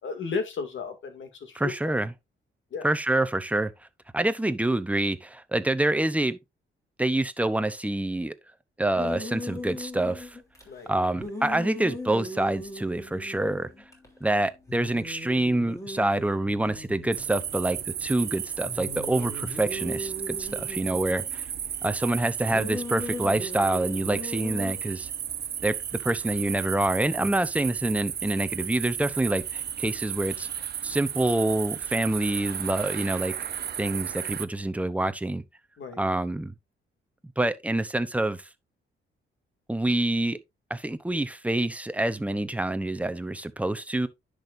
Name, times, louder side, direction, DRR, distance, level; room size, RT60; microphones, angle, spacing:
voice 1, 0.0-1.9 2.7-2.9 10.7-10.9 35.8-36.0, left 5 dB, 65° left, 2.3 m, -34 dB
voice 2, 1.5-2.1 2.8-3.7 4.1-6.4 7.0-8.3 8.8-10.4 10.9-13.7 14.2-21.4 21.8-25.1 25.6-25.7 26.0-30.5 30.8-33.3 33.8-35.4 36.0-36.5 37.4-38.4 39.7-40.4 40.7-44.1, right 1 dB, 5° right, 0.7 m, -26 dB
sound 1, 9.0-10.6 11.1-14.1 14.3-14.4 14.7-18.1 18.7-21.4 22.5-24.7, left 1 dB, 15° left, 3.2 m, -38 dB
sound 2, 17.1-34.5, right 9 dB, 50° right, 0.7 m, -34 dB
10.5 x 6.2 x 2.6 m
cardioid pair, 120°, 21 cm